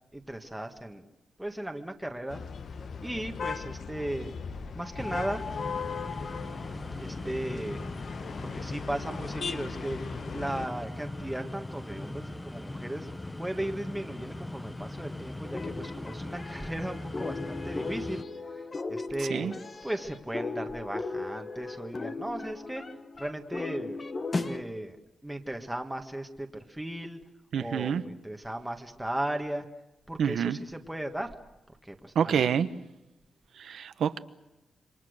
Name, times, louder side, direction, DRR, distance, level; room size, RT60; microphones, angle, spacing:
voice 1, 0.1-1.1 1.4-2.4 3.0-4.3 4.7-5.4 7.0-10.0 10.3-13.1 13.4-18.2 18.5-18.6 18.9-19.5 19.8-22.8 23.2-24.0 24.4-25.0 25.2-27.2 27.6-29.6 30.1-31.3 31.8-32.5, right 1 dB, 5° right, 4 dB, 1.6 m, -36 dB
sound 1, 2.3-10.7, left 6 dB, 55° left, 1.1 m, -38 dB
sound 2, 5.0-18.2, left 1 dB, 10° left, 0.9 m, -40 dB
sound 3, 15.4-24.6, left 3 dB, 30° left, 1.2 m, -37 dB
voice 2, 19.2-19.5 27.5-28.0 30.2-30.6 32.1-32.7 33.5-34.2, right 8 dB, 80° right, 11 dB, 1.1 m, -27 dB
27.5 x 24.5 x 6.6 m, 0.99 s
wide cardioid pair, 145°, 0 cm